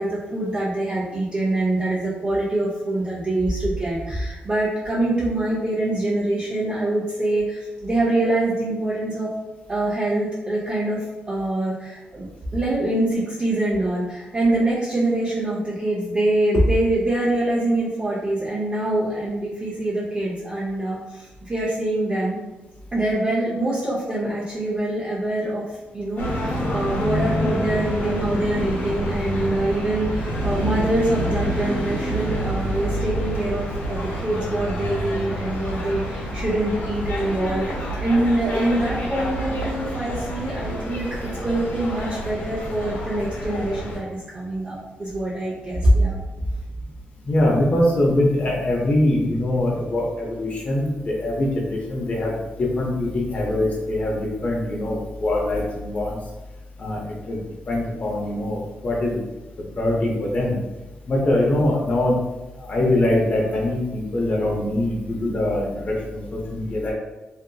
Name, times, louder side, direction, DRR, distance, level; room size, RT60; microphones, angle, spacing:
voice 1, 0.0-9.3 9.7-22.4 22.9-41.1 41.4-46.2, right 1 dB, 30° right, -7 dB, 0.5 m, -24 dB
sound 1, 26.2-44.0, equal, 65° left, 0.9 m, -28 dB
voice 2, 47.3-56.2 56.8-57.4 57.7-59.2 59.8-60.6 61.1-62.2 62.6-66.9, left 1 dB, 40° left, -2 dB, 0.6 m, -23 dB
2.7 x 2.5 x 2.3 m, 1.1 s
cardioid pair, 105°, 3 cm